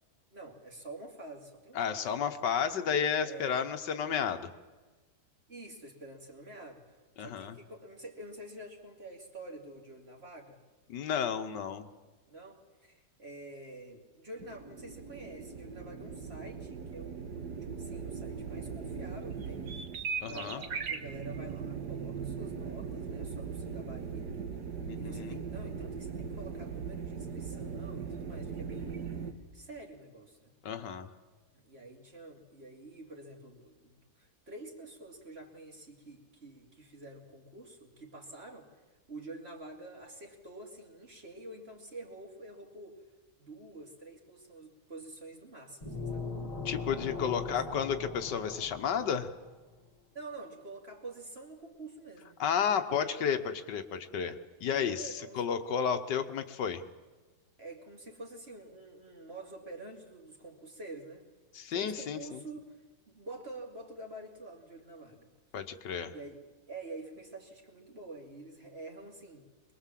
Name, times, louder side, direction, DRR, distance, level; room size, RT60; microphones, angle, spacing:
voice 1, 0.3-2.0 3.2-3.7 5.5-10.6 12.3-17.5 17.7-19.6 20.3-24.5 25.0-29.1 29.5-30.5 31.6-38.8 39.1-43.0 43.4-46.3 47.3-47.6 50.1-52.4 54.7-55.4 57.6-61.3 61.7-65.3 66.1-69.5, right 2 dB, 35° right, 2 dB, 2.8 m, -48 dB
voice 2, 1.7-4.5 7.2-7.5 10.9-11.9 20.2-20.6 24.9-25.4 30.6-31.1 46.6-49.3 52.4-56.8 61.5-62.4 65.5-66.1, left 7 dB, 80° left, 8 dB, 1.7 m, -32 dB
sound 1, 14.4-29.3, right 6 dB, 70° right, 1.9 m, -39 dB
sound 2, 45.8-49.5, left 4 dB, 20° left, 1.8 m, -40 dB
23.0 x 21.0 x 7.5 m, 1.3 s
omnidirectional pair, 1.9 m